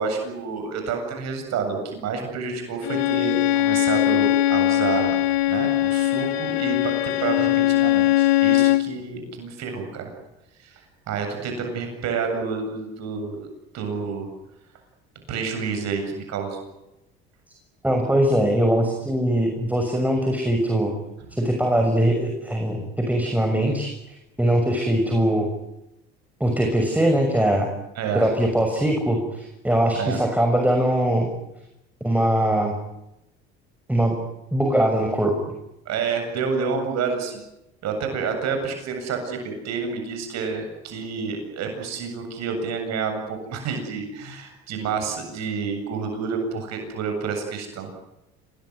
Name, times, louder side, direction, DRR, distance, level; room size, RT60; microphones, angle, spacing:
voice 1, 0.0-5.1 5.5-10.1 10.6-13.5 13.7-14.3 15.3-16.7 28.0-28.3 29.9-30.2 35.9-37.4 37.8-47.9, right 5 dB, 60° right, 5 dB, 7.9 m, -29 dB
Bowed string instrument, 2.8-8.9, left 14 dB, 85° left, 1.4 m, -20 dB
voice 2, 17.8-20.9 21.3-23.9 24.4-25.5 26.4-27.7 28.1-31.3 32.0-32.7 33.9-34.2 34.5-35.3, right 1 dB, 5° right, 3 dB, 6.3 m, -21 dB
27.0 x 20.0 x 9.7 m, 0.89 s
supercardioid pair, 75°, 30 cm